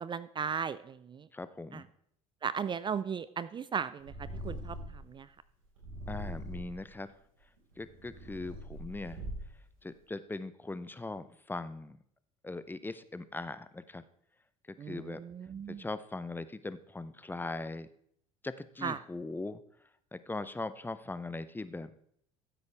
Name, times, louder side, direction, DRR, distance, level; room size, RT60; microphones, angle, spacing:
voice 1, 0.0-1.2 1.7-1.8 2.4-4.1 4.4-4.8 5.1-5.3 14.8-15.8 18.8-19.0, right 7 dB, 25° right, 16 dB, 0.4 m, -36 dB
voice 2, 1.3-1.9 6.1-7.1 7.8-9.2 9.8-12.0 12.4-14.0 14.7-15.2 15.7-17.9 18.4-19.6 20.1-21.9, left 2 dB, 10° left, 13 dB, 0.7 m, -40 dB
Purr, 4.0-5.1 5.8-6.9 7.6-9.7, equal, 80° right, 4.9 m, -42 dB
15.0 x 8.1 x 3.4 m, 0.67 s
hypercardioid pair, 70°, 17 cm